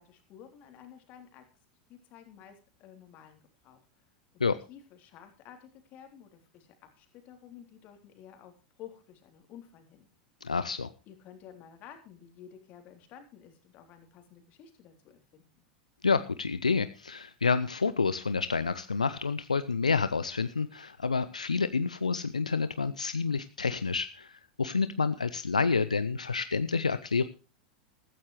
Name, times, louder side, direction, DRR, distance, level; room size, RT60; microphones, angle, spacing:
voice 1, 0.0-1.5 1.9-4.1 4.3-4.4 4.7-10.1 11.0-15.5, left 9 dB, 45° left, 5 dB, 3.4 m, -52 dB
voice 2, 10.4-10.9 16.0-27.3, left 4 dB, 85° left, 14 dB, 0.5 m, -29 dB
15.0 x 14.0 x 3.2 m, 0.33 s
figure-of-eight pair, 85°, 4 cm